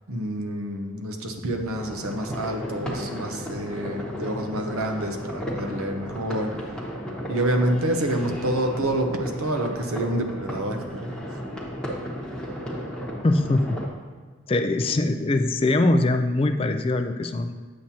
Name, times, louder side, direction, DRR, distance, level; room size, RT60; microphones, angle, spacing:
voice 1, 0.1-6.7 7.3-11.4, right 1 dB, 85° right, 4 dB, 0.9 m, -28 dB
sound 1, 1.7-13.9, equal, 5° left, 1.1 m, -34 dB
voice 2, 13.2-13.8 14.5-17.5, left 2 dB, 25° left, 8 dB, 0.3 m, -22 dB
8.7 x 7.4 x 2.8 m, 1.5 s
head